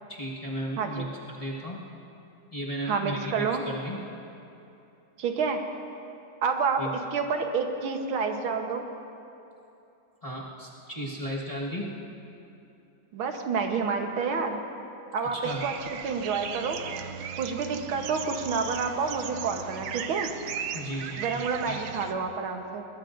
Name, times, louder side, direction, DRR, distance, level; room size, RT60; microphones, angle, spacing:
voice 1, 0.1-1.8 2.5-4.0 6.8-6.9 10.2-12.0 15.3-15.6 20.7-21.4 21.6-21.8, right 1 dB, 20° left, -5 dB, 1.4 m, -35 dB
voice 2, 2.8-3.6 5.2-5.6 6.4-6.8 7.1-8.8 13.1-14.6 15.1-15.7 16.0-16.8 17.4-20.3 21.2-22.9, right 5 dB, 85° right, 4 dB, 2.0 m, -29 dB
sound 1, 15.4-22.1, right 8 dB, 70° right, 1.3 m, -37 dB
21.5 x 20.5 x 2.6 m, 2.8 s
omnidirectional pair, 2.2 m